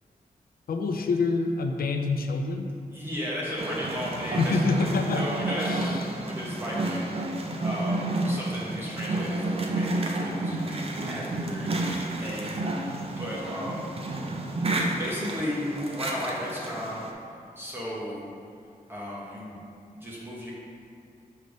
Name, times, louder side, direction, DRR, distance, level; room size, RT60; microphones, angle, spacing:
voice 1, 0.7-2.7 4.4-5.2 5.6-6.0, left 3 dB, 80° left, 5 dB, 0.5 m, -26 dB
voice 2, 2.9-5.9 6.2-11.7 12.1-13.9 14.9-17.0 17.6-18.3 18.9-19.6 20.0-20.5, equal, 15° right, -6 dB, 1.0 m, -35 dB
sound 1, 3.6-17.1, right 2 dB, 40° right, 0.5 m, -31 dB
6.4 x 3.3 x 5.2 m, 2.4 s
wide cardioid pair, 150°, 15 cm